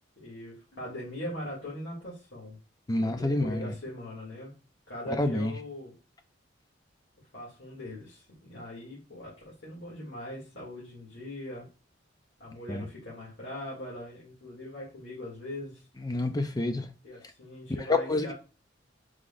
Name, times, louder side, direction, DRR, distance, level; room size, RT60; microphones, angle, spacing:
voice 1, 0.2-2.6 2.9-4.5 4.9-5.9 7.3-11.6 12.4-15.8 17.0-18.3, left 1 dB, 65° left, 2.4 m, -41 dB
voice 2, 2.9-3.7 5.2-5.5 12.7-12.8 16.0-16.9 17.9-18.3, left 2 dB, 20° left, 0.5 m, -28 dB
4.9 x 3.7 x 2.5 m
head